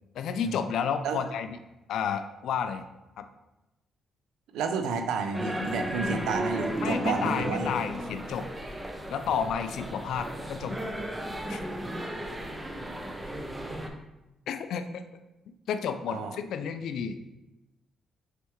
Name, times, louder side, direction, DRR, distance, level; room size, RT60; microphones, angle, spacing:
voice 1, 0.1-1.5 1.9-2.8 3.2-3.3 6.8-8.5 9.1-10.9 11.5-11.6 14.5-15.0 15.7-17.2, left 7 dB, 75° left, 9 dB, 0.3 m, -31 dB
voice 2, 4.5-7.8 16.1-16.4, right 5 dB, 85° right, 7 dB, 0.4 m, -31 dB
sound 1, 5.3-13.9, right 1 dB, 15° right, 0.5 m, -34 dB
4.5 x 3.3 x 3.0 m, 0.98 s
cardioid pair, 90°, 0 cm